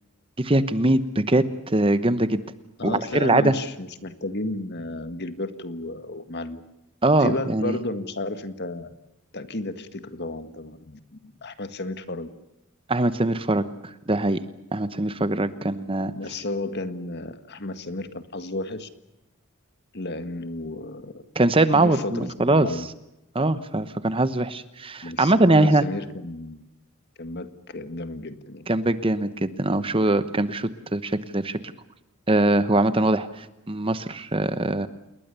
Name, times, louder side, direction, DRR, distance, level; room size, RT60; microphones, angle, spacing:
voice 1, 0.4-2.4 2.8-3.5 7.0-7.8 12.9-13.6 14.1-14.4 14.7-16.1 21.3-22.7 23.3-25.8 28.7-31.6 32.3-34.9, right 2 dB, 25° right, 13 dB, 1.0 m, -22 dB
voice 2, 2.8-6.6 7.2-9.0 9.3-12.3 16.2-18.9 19.9-21.2 21.7-22.9 25.0-26.6 27.2-28.7, left 2 dB, 50° left, 10 dB, 1.8 m, -33 dB
28.5 x 21.0 x 6.9 m, 0.91 s
head